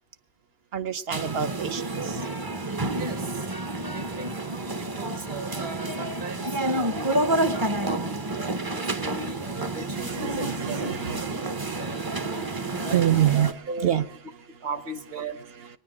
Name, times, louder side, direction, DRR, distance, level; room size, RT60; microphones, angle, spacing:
voice 1, 0.7-1.8 9.9-13.5 13.8-14.1, right 10 dB, 75° right, 9 dB, 0.9 m, -27 dB
sound 1, 1.1-13.5, right 2 dB, 30° right, 0.5 m, -29 dB
voice 2, 3.0-3.5 3.9-10.9 12.8-14.0 14.6-15.4, right 3 dB, 50° right, 9 dB, 1.1 m, -38 dB
21.5 x 9.5 x 4.8 m, 0.69 s
omnidirectional pair, 1.0 m